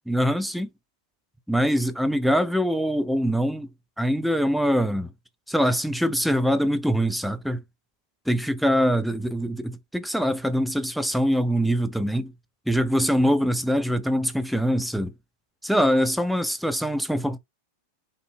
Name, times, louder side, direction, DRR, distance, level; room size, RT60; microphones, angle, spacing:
voice 1, 0.1-0.7 1.5-3.7 4.0-5.1 5.5-7.6 8.3-12.3 12.7-15.1 15.6-17.4, equal, ahead, 0.3 m, -23 dB
3.2 x 2.2 x 3.2 m
figure-of-eight pair, 90°, 0 cm